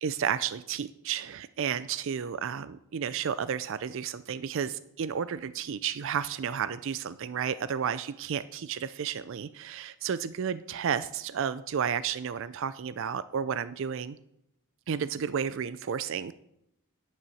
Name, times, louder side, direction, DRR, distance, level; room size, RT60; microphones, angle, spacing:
voice 1, 0.0-14.2 14.9-16.3, right 7 dB, 60° right, 15 dB, 0.4 m, -32 dB
9.5 x 8.7 x 7.0 m, 0.80 s
head